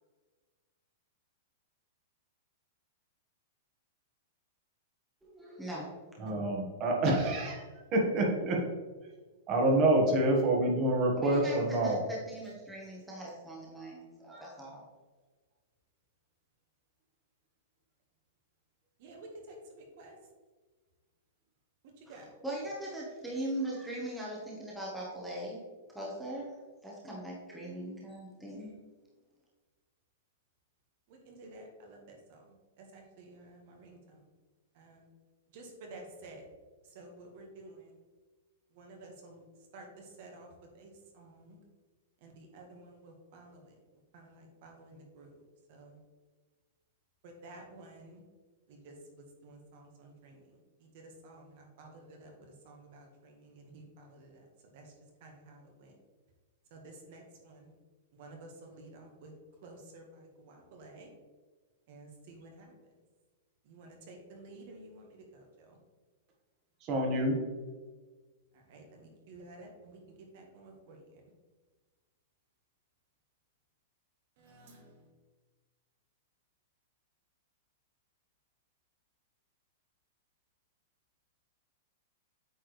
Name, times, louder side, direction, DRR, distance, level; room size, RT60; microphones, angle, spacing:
voice 1, 5.2-6.0 11.2-11.6 11.8-14.8 22.1-25.6 25.9-28.7, right 1 dB, 5° right, -5 dB, 1.1 m, -40 dB
voice 2, 6.2-7.6 7.9-8.6 9.5-12.0 66.8-67.4, right 1 dB, 30° right, 0 dB, 1.5 m, -27 dB
voice 3, 19.0-19.5 20.0-20.1 22.1-22.3 31.2-32.4 32.8-34.0 34.8-35.0 35.5-36.4 36.9-37.8 38.8-39.4 39.7-39.9 40.2-40.5 40.8-40.9 41.1-41.6 42.2-43.6 44.1-45.3 45.7-45.9 47.2-48.2 48.7-48.9 49.4-50.4 51.2-52.3 52.6-54.4 54.7-54.8 55.2-55.9 56.7-57.7 58.2-59.3 59.6-60.0 60.4-61.1 61.9-62.7 63.7-65.5 68.7-70.0 70.3-71.0 74.4-74.9, right 2 dB, 50° right, 1 dB, 1.4 m, -52 dB
8.6 x 4.5 x 3.2 m, 1.3 s
supercardioid pair, 160°, 0 cm